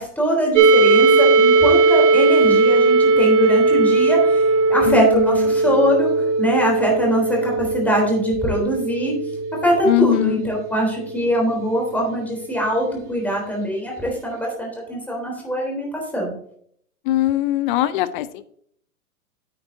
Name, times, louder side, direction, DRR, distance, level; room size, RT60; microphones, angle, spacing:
voice 1, 0.0-4.4 4.7-9.2 9.5-15.9 16.1-16.3, equal, 5° left, -1 dB, 3.5 m, -22 dB
sound 1, 0.6-12.3, right 3 dB, 50° right, 1.5 m, -18 dB
voice 2, 4.8-5.5 9.9-10.4 17.0-18.4, left 14 dB, 35° left, 15 dB, 0.6 m, -21 dB
9.2 x 9.0 x 2.7 m, 0.64 s
hypercardioid pair, 125°, 44 cm